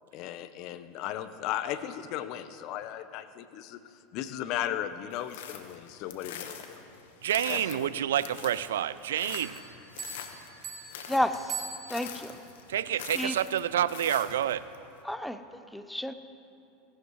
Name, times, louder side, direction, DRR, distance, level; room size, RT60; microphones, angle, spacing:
voice 1, 0.1-3.8 4.1-6.8 7.5-7.9, left 11 dB, 55° left, 11 dB, 0.8 m, -36 dB
sound 1, 5.1-14.8, left 8 dB, 75° left, 1.2 m, -44 dB
voice 2, 7.2-9.6 12.7-14.7, right 11 dB, 85° right, 17 dB, 0.4 m, -28 dB
sound 2, 9.3-12.3, right 5 dB, 50° right, 2.7 m, -42 dB
voice 3, 11.1-11.6 11.9-12.4 13.1-13.4 15.0-15.4 15.7-16.1, left 1 dB, 5° left, 10 dB, 0.7 m, -30 dB
17.5 x 17.0 x 3.2 m, 2.7 s
hypercardioid pair, 100°, 0 cm